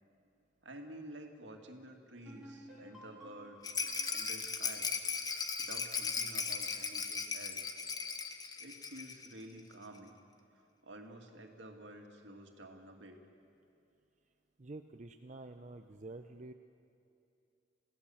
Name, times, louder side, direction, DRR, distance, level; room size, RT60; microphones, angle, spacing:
voice 1, 0.6-3.7 4.1-4.9 5.6-7.7 8.6-10.1 10.8-13.2, right 1 dB, 80° right, 3 dB, 2.3 m, -51 dB
sound 1, 2.3-5.8, equal, 5° right, 6.3 m, -56 dB
Rattle, 3.6-9.3 9.6-9.7 10.0-10.1, left 5 dB, 20° left, 1.0 m, -37 dB
voice 2, 14.6-16.5, right 2 dB, 40° right, 7 dB, 0.6 m, -48 dB
30.0 x 17.0 x 7.2 m, 2.6 s
head